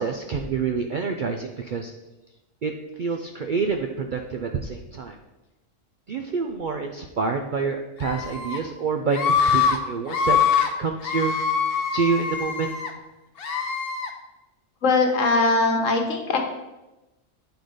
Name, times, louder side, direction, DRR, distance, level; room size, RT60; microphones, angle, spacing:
voice 1, 0.0-1.9 2.6-2.7 3.0-5.1 6.1-10.4 10.8-11.4 11.9-12.7, right 5 dB, 65° right, 4 dB, 0.5 m, -27 dB
Screaming, 8.0-8.6 9.1-9.8 10.1-10.7 11.0-12.9 13.4-14.1, left 6 dB, 50° left, 0.9 m, -23 dB
voice 2, 14.8-16.4, left 3 dB, 70° left, 4 dB, 1.4 m, -20 dB
9.2 x 3.9 x 5.0 m, 1.0 s
omnidirectional pair, 1.4 m